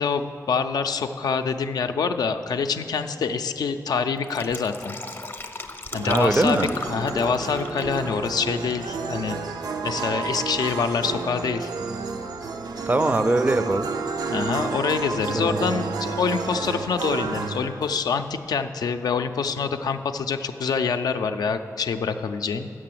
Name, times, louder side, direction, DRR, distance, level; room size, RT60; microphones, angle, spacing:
voice 1, 0.0-5.0 5.9-9.4 9.8-11.7 14.3-22.7, left 5 dB, 85° left, 8 dB, 0.4 m, -26 dB
Fill (with liquid), 4.2-8.9 9.2-9.3, left 3 dB, 35° left, 0.6 m, -38 dB
sound 1, 5.9-18.2, right 4 dB, 85° right, 0.5 m, -31 dB
voice 2, 6.0-6.7 12.9-13.9 15.3-15.8, right 2 dB, 25° right, 11 dB, 0.4 m, -22 dB
6.7 x 6.1 x 7.5 m, 2.4 s
cardioid pair, 65°, 7 cm